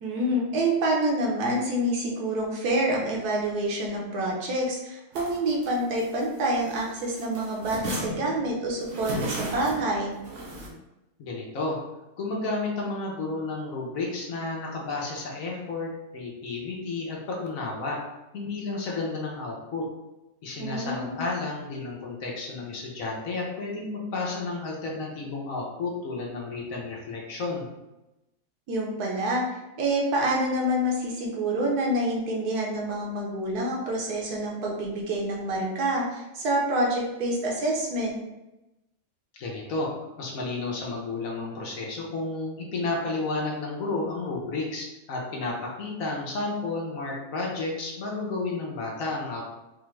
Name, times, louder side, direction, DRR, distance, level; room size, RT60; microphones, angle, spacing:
voice 1, 0.0-10.1 20.6-21.2 28.7-29.4 29.8-38.2, right 1 dB, 85° right, -2 dB, 1.4 m, -27 dB
sound 1, 5.1-6.8 7.1-10.7, equal, 60° right, 1.1 m, -36 dB
voice 2, 11.2-11.8 12.2-18.0 18.3-19.9 20.4-27.7 39.4-39.9 40.2-49.4, left 3 dB, 65° left, -2 dB, 1.2 m, -32 dB
4.1 x 2.4 x 3.1 m, 0.98 s
omnidirectional pair, 1.6 m